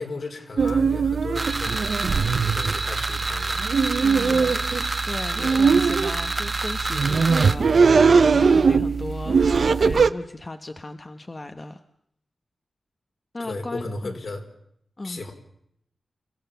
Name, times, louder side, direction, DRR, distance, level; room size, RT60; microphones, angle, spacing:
voice 1, 0.0-1.9 2.4-3.6 4.3-4.5 5.4-5.6 13.4-14.4 15.0-15.3, left 2 dB, 70° left, 4 dB, 4.3 m, -35 dB
sound 1, 0.6-10.1, right 5 dB, 70° right, 0.8 m, -21 dB
sound 2, 1.3-7.5, right 3 dB, 40° right, 1.4 m, -28 dB
voice 2, 4.0-4.5 5.0-11.8 13.3-14.2 15.0-15.2, left 2 dB, 35° left, 7 dB, 1.2 m, -36 dB
29.0 x 15.5 x 7.0 m, 0.74 s
cardioid pair, 70°, 0 cm